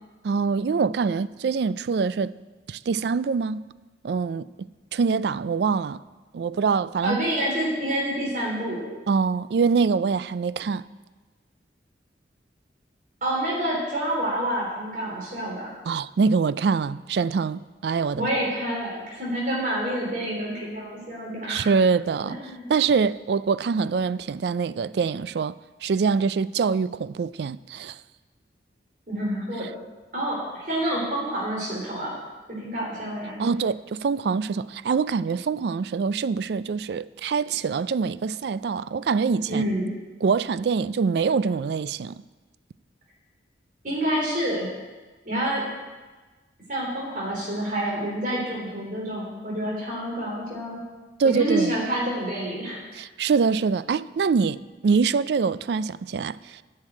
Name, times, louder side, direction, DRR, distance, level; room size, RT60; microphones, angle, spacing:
voice 1, 0.2-2.3 2.7-3.7 4.0-4.5 4.9-6.0 6.3-7.2 9.1-10.8 15.9-18.3 21.5-22.4 22.7-25.5 25.8-28.0 33.4-39.6 40.2-42.2 51.2-51.8 52.9-56.6, right 5 dB, 65° right, 0.3 m, -24 dB
voice 2, 7.0-8.8 13.2-15.7 18.1-21.7 22.2-22.7 29.1-29.7 30.1-32.2 32.5-33.4 37.5-37.6 39.5-39.9 43.8-44.7 45.3-45.6 46.7-50.8 51.2-52.8, right 1 dB, 45° right, 3.6 m, -28 dB
10.5 x 6.7 x 8.8 m
head